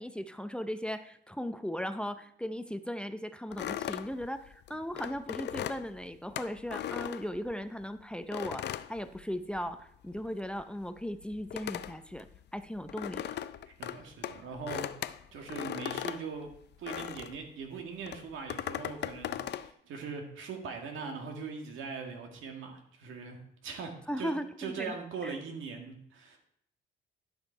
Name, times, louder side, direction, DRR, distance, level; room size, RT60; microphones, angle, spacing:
voice 1, 0.0-12.3 12.5-13.3 24.1-25.0 25.2-25.3, equal, 5° left, 10 dB, 0.5 m, -37 dB
sound 1, 3.5-7.8 8.3-9.8 10.1-17.4 18.0-19.7, left 11 dB, 60° left, 0.5 m, -39 dB
voice 2, 13.7-16.5 16.8-24.3 24.6-26.4, right 5 dB, 80° right, 3 dB, 1.8 m, -41 dB
11.5 x 5.2 x 4.5 m, 0.68 s
cardioid pair, 90°, 20 cm